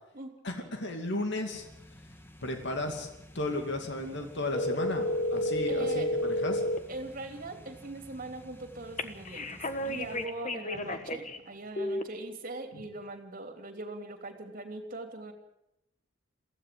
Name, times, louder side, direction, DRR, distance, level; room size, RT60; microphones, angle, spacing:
voice 1, 0.4-1.7 2.4-3.1 3.3-6.6, left 2 dB, 65° left, 5 dB, 2.6 m, -34 dB
sound 1, 1.5-10.3, equal, 10° left, 1.7 m, -52 dB
voice 2, 4.0-4.3 5.7-6.1 6.9-15.3, right 2 dB, 45° right, 6 dB, 3.1 m, -41 dB
sound 2, 4.5-6.8 9.0-11.4 11.8-12.0, left 1 dB, 40° left, 1.4 m, -31 dB
23.5 x 15.5 x 7.7 m, 0.85 s
head